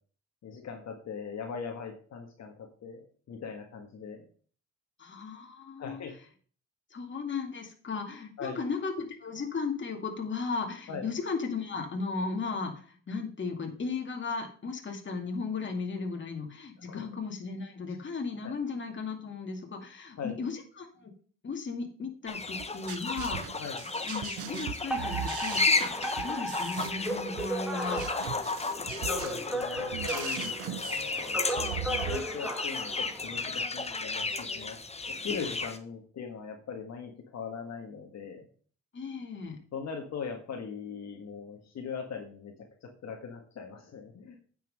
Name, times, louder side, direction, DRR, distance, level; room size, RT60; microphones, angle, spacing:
voice 1, 0.4-4.2 5.8-6.1 8.4-8.6 10.9-11.1 16.8-17.1 18.4-18.5 20.2-20.4 23.6-23.8 29.1-31.6 32.0-34.8 35.1-38.5 39.7-42.5 42.8-44.4, left 6 dB, 60° left, 2 dB, 1.8 m, -40 dB
voice 2, 5.0-6.0 6.9-21.1 21.4-23.4 24.1-25.9 26.2-28.0 38.9-39.6, left 4 dB, 40° left, 3 dB, 2.4 m, -36 dB
sound 1, 22.3-35.8, left 3 dB, 20° left, 1.1 m, -33 dB
sound 2, 22.6-32.2, right 11 dB, 90° right, 0.7 m, -40 dB
Alarm, 24.9-33.5, right 1 dB, 5° right, 2.0 m, -36 dB
9.3 x 6.0 x 5.4 m, 0.43 s
cardioid pair, 90°, 30 cm